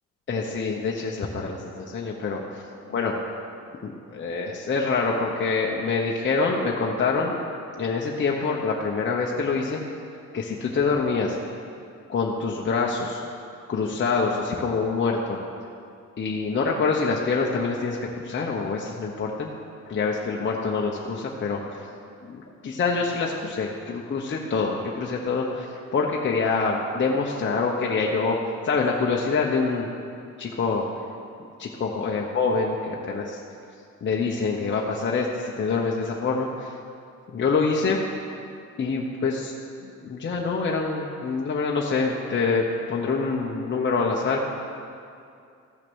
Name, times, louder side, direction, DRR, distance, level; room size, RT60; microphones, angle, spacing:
voice 1, 0.3-2.6 2.9-3.1 3.8-7.4 7.8-10.0 10.3-11.4 12.1-13.2 13.7-15.4 16.2-19.5 19.8-21.9 22.3-25.7 25.9-28.4 28.6-29.9 30.4-30.8 31.6-33.4 34.0-36.7 37.3-38.0 38.8-39.5 39.8-44.5, left 4 dB, 40° left, -2 dB, 1.1 m, -26 dB
14.5 x 5.9 x 6.3 m, 2.5 s
cardioid pair, 90°, 30 cm